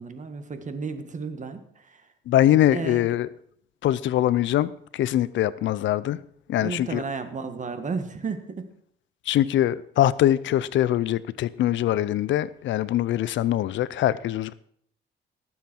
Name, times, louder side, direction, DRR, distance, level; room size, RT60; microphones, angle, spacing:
voice 1, 0.0-2.1 2.7-3.1 6.6-8.7, right 4 dB, 40° right, 1.6 m, -33 dB
voice 2, 2.3-3.3 3.8-6.2 6.5-7.0 9.3-14.5, left 12 dB, 70° left, 0.5 m, -23 dB
18.0 x 7.4 x 4.5 m
cardioid pair, 90°, 20 cm